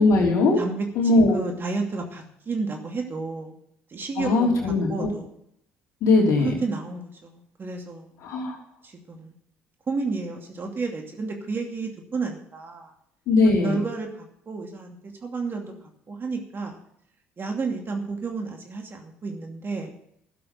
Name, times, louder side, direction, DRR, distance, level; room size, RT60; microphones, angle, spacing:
voice 1, 0.0-0.6 0.9-1.4 4.2-5.1 6.0-6.6 8.2-8.6 13.3-13.8, left 3 dB, 65° left, 0 dB, 3.2 m, -20 dB
voice 2, 1.1-3.5 3.9-5.3 6.4-8.2 8.8-9.3 9.9-12.9 13.6-15.7 16.1-16.8 17.4-19.9, right 4 dB, 40° right, 2 dB, 2.6 m, -31 dB
12.5 x 7.7 x 7.4 m, 0.71 s
hypercardioid pair, 60°, 6 cm